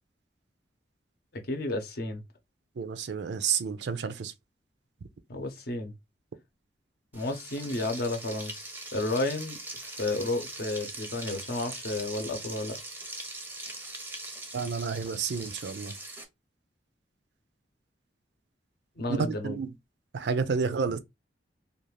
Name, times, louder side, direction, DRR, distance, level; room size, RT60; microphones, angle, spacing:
voice 1, 1.3-2.2 5.3-5.9 7.1-12.8 19.0-19.6, left 2 dB, 60° left, 0.7 m, -32 dB
voice 2, 2.8-4.3 14.5-15.9 19.1-19.7 20.1-21.0, right 5 dB, 70° right, 0.4 m, -30 dB
Frying (food), 7.1-16.2, right 2 dB, 10° right, 0.5 m, -41 dB
2.5 x 2.4 x 3.1 m
head